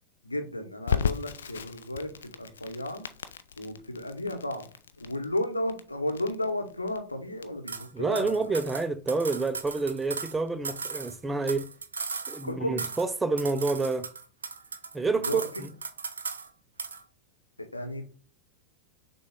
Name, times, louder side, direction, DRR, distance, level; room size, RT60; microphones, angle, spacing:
voice 1, 0.2-2.1 2.4-3.0 3.6-4.7 5.0-8.5 12.4-12.8 15.2-15.5 17.6-18.0, left 1 dB, 85° left, 0.8 m, -33 dB
Crackle, 0.9-11.6, left 7 dB, 65° left, 0.4 m, -37 dB
sound 1, 7.7-7.9 8.2-10.4 10.6-12.5 12.8-13.1 13.4-15.0 15.2-16.5 16.8-17.0, right 5 dB, 70° right, 0.5 m, -37 dB
voice 2, 7.9-11.7 12.3-14.1 14.9-15.7, right 3 dB, 10° right, 0.3 m, -28 dB
6.3 x 2.3 x 3.5 m
figure-of-eight pair, 90°, 0 cm